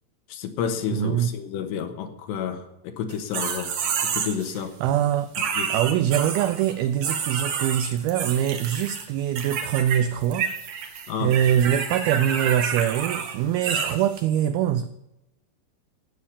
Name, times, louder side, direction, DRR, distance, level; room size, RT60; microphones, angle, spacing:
voice 1, 0.3-3.7 4.1-4.7 5.6-5.7 11.1-11.3, left 7 dB, 80° left, 3.3 m, -30 dB
voice 2, 0.9-1.3 4.8-5.3 5.7-10.5 11.2-14.9, right 10 dB, 85° right, 2.1 m, -23 dB
sound 1, 3.1-4.6 5.3-6.7 7.0-9.1 9.4-10.0 10.2-14.2, right 7 dB, 60° right, 2.7 m, -29 dB
16.0 x 7.3 x 8.4 m
omnidirectional pair, 5.1 m